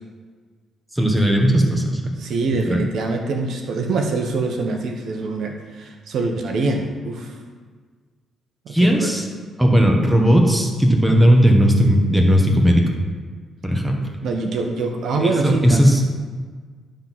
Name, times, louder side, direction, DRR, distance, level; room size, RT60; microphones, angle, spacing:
voice 1, 0.9-2.0 2.7-2.8 8.7-9.2 9.6-12.8 13.6-13.9 15.2-16.1, equal, 5° right, 2 dB, 1.4 m, -16 dB
voice 2, 2.2-7.3 8.7-9.1 14.2-15.8, right 3 dB, 70° right, 3 dB, 1.0 m, -24 dB
11.5 x 3.8 x 6.0 m, 1.5 s
cardioid pair, 90°, 0 cm